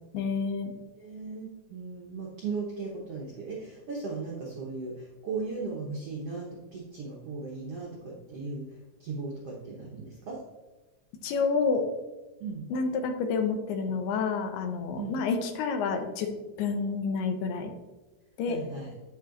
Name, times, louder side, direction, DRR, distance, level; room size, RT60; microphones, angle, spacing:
voice 1, 0.1-0.7 11.2-11.8 12.7-16.3 16.6-17.7 18.4-18.6, left 5 dB, 90° left, 6 dB, 2.9 m, -29 dB
voice 2, 0.9-10.4 12.4-12.7 15.0-15.2 18.5-18.9, right 4 dB, 80° right, -3 dB, 1.3 m, -37 dB
8.7 x 8.2 x 2.5 m, 1.1 s
omnidirectional pair, 4.5 m